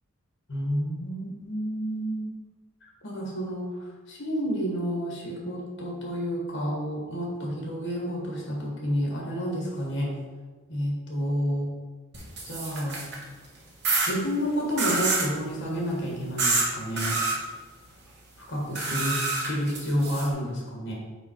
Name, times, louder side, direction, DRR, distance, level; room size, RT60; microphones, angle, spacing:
voice 1, 0.5-2.3 3.0-10.2 10.7-11.7 12.4-13.1 14.0-17.2 18.4-20.9, equal, 55° left, -2 dB, 1.7 m, -30 dB
sound 1, 12.1-13.2 13.8-14.1 14.8-15.3 16.4-16.7 17.0-17.3 18.7-20.3, right 3 dB, 50° right, 1.2 m, -27 dB
5.5 x 4.0 x 4.7 m, 1.4 s
head